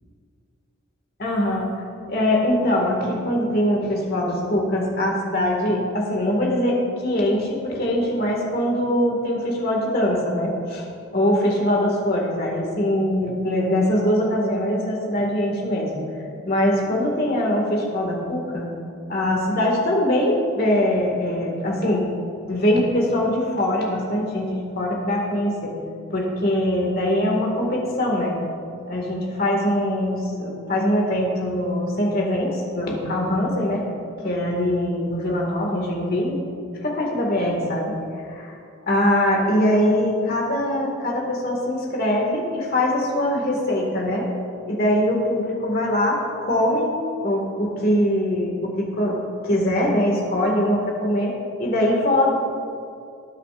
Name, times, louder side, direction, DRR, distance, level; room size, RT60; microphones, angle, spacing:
voice 1, 1.2-1.7 2.1-6.8 7.0-10.8 11.1-16.0 16.5-18.7 19.1-22.0 22.5-25.7 26.1-28.4 28.9-33.9 34.2-36.4 36.8-37.9 38.3-38.5 38.9-44.2 44.6-46.9 47.2-49.2 49.4-51.3 51.6-52.3, left 1 dB, 45° left, -1 dB, 2.0 m, -22 dB
19.0 x 8.3 x 2.6 m, 2.5 s
head